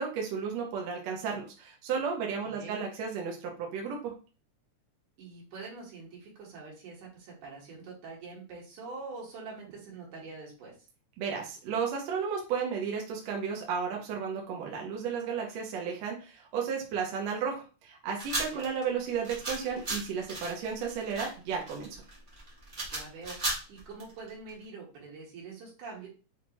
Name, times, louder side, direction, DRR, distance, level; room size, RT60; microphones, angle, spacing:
voice 1, 0.0-4.1 11.2-22.0, right 6 dB, 70° right, 0 dB, 1.9 m, -33 dB
voice 2, 2.5-2.8 5.2-10.7 18.5-18.6 22.9-26.1, right 4 dB, 85° right, -4 dB, 3.0 m, -45 dB
sound 1, 18.2-24.5, right 2 dB, 50° right, 0.5 m, -36 dB
6.1 x 2.5 x 2.9 m, 0.35 s
omnidirectional pair, 3.5 m